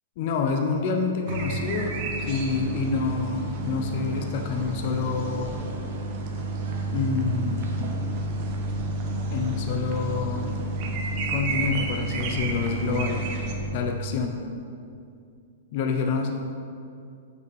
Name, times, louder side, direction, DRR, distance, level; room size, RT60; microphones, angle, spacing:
voice 1, 0.2-1.9 2.3-5.6 6.9-7.8 9.3-10.6 11.3-13.2 13.7-14.4 15.7-16.3, left 4 dB, 45° left, 4 dB, 0.6 m, -27 dB
sound 1, 1.3-13.5, right 4 dB, 35° right, 0.8 m, -35 dB
sound 2, 1.3-13.8, right 1 dB, 70° right, 1.0 m, -32 dB
6.2 x 5.3 x 5.4 m, 2.4 s
hypercardioid pair, 160°, 0 cm